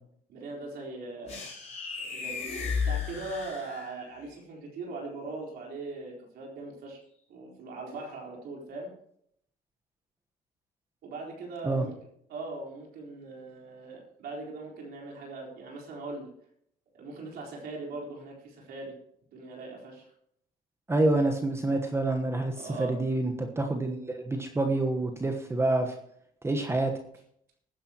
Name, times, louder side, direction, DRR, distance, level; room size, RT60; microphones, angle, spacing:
voice 1, 0.3-1.4 2.0-7.0 7.3-8.9 11.0-11.9 12.3-16.3 16.9-19.0 19.3-20.0 22.6-23.0, right 3 dB, 70° right, -1 dB, 4.1 m, -40 dB
sound 1, 1.3-4.2, left 6 dB, 40° left, 6.5 m, -34 dB
voice 2, 20.9-26.0 26.4-26.9, right 2 dB, 15° right, 4 dB, 1.2 m, -27 dB
19.5 x 9.8 x 3.0 m, 0.70 s
cardioid pair, 110°, 17 cm